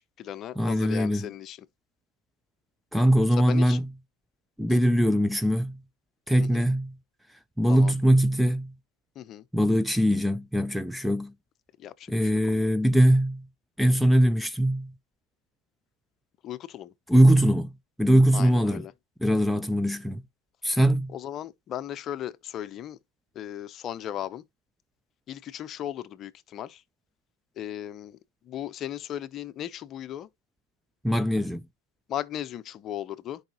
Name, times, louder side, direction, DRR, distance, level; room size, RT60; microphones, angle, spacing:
voice 1, 0.0-1.6 3.4-3.8 4.7-4.8 6.4-6.7 7.7-7.9 9.2-9.4 11.8-12.7 16.4-16.9 18.3-18.9 21.1-23.0 23.3-24.4 25.3-26.8 27.6-28.2 28.4-30.3 32.1-33.4, left 11 dB, 35° left, 0.7 m, -37 dB
voice 2, 0.6-1.3 2.9-3.9 4.6-5.8 6.3-6.9 7.3-8.7 9.5-11.3 12.1-13.5 13.8-14.9 17.1-17.7 18.0-18.9 19.2-20.2 20.6-21.1 31.0-31.7, equal, ahead, 0.4 m, -22 dB
10.5 x 4.8 x 2.9 m
hypercardioid pair, 115°, 0 cm